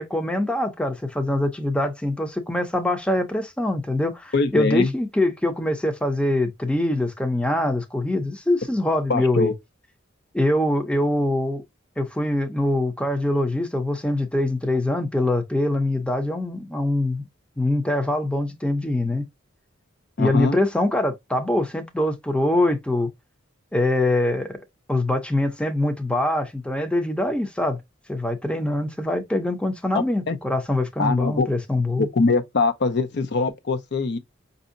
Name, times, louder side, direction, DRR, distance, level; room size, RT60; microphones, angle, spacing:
voice 1, 0.0-9.5 10.3-11.6 12.0-17.2 17.6-19.3 20.2-23.1 23.7-24.6 24.9-27.8 28.1-32.1, left 1 dB, 5° left, 0.6 m, -23 dB
voice 2, 4.3-4.9 9.1-9.5 20.2-20.6 30.3-30.4 31.0-31.5 32.0-34.2, left 3 dB, 60° left, 0.6 m, -22 dB
5.2 x 2.7 x 2.5 m
head